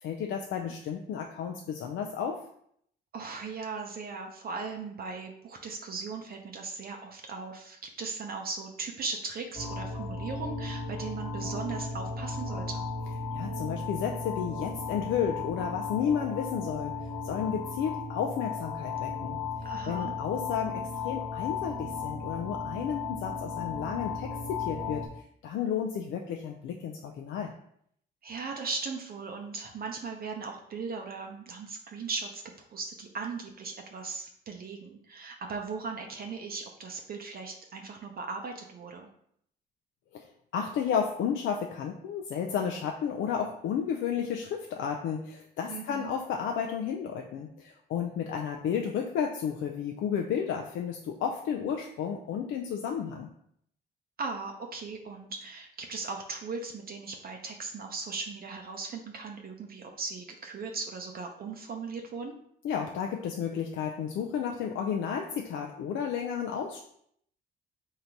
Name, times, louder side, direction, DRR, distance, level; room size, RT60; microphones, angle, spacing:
voice 1, 0.0-2.4 13.3-16.9 17.2-25.1 25.4-27.5 40.1-53.3 62.6-66.8, left 7 dB, 75° left, 2 dB, 0.5 m, -32 dB
voice 2, 3.1-12.8 19.6-20.2 28.2-32.4 32.7-39.1 45.7-46.1 54.2-62.3, right 4 dB, 50° right, 2 dB, 0.6 m, -38 dB
sound 1, 9.5-25.1, left 4 dB, 20° left, 1.1 m, -35 dB
3.8 x 2.8 x 4.4 m, 0.70 s
cardioid pair, 90°, 20 cm